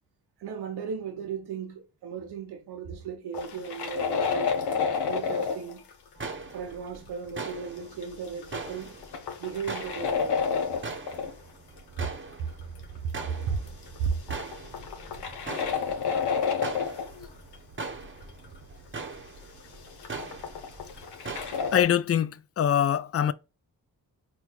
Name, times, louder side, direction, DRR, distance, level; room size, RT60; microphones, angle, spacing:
voice 1, 0.4-4.6 5.1-5.8 6.5-9.0 9.4-10.4 12.0-12.1 12.4-12.5 12.9-13.7 14.0-14.1, right 6 dB, 90° right, 0.7 m, -35 dB
sound 1, 3.3-5.9 7.5-7.6 7.9-11.3 12.0-12.1 12.8-13.2 13.5-17.3 17.5-17.6 18.4-18.5 19.7-21.8, left 6 dB, 85° left, 0.7 m, -30 dB
sound 2, 6.2-21.9, right 3 dB, 30° right, 0.8 m, -41 dB
voice 2, 21.7-23.3, left 9 dB, 40° left, 0.4 m, -24 dB
4.4 x 2.2 x 3.8 m
supercardioid pair, 45°, 39 cm